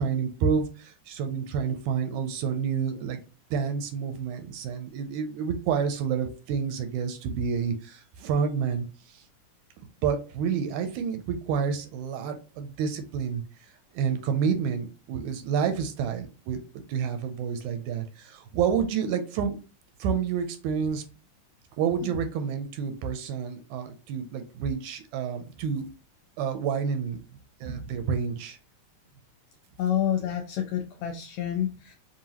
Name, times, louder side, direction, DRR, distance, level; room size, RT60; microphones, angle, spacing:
voice 1, 0.0-3.2 3.5-9.2 10.0-13.4 13.9-19.6 20.0-21.0 21.8-25.9 26.4-27.2 27.6-28.6, right 6 dB, 80° right, 7 dB, 1.9 m, -29 dB
voice 2, 29.8-31.9, left 10 dB, 80° left, 3 dB, 1.6 m, -28 dB
5.5 x 2.6 x 2.8 m, 0.34 s
omnidirectional pair, 3.7 m